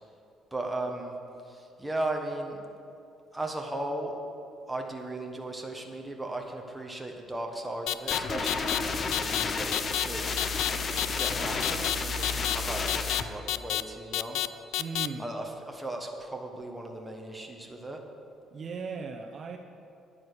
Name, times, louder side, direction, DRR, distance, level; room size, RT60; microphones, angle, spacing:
voice 1, 0.5-1.1 1.4-2.6 3.3-4.1 4.7-10.5 11.2-14.4 15.2-18.0, right 2 dB, 10° right, 2 dB, 1.3 m, -36 dB
sound 1, 7.9-8.2 8.5-8.8 9.1-9.4 9.7-10.0 10.4-10.7 11.0-11.3 11.6-12.0 12.2-12.6 12.9-13.2 13.5-13.8 14.1-14.5 14.7-15.1, left 14 dB, 85° left, 0.4 m, -28 dB
sound 2, 8.1-13.2, left 4 dB, 35° left, 0.8 m, -31 dB
voice 2, 14.8-15.2 18.5-19.6, right 5 dB, 40° right, 3 dB, 0.8 m, -37 dB
10.0 x 9.5 x 6.8 m, 2.6 s
cardioid pair, 130°, 0 cm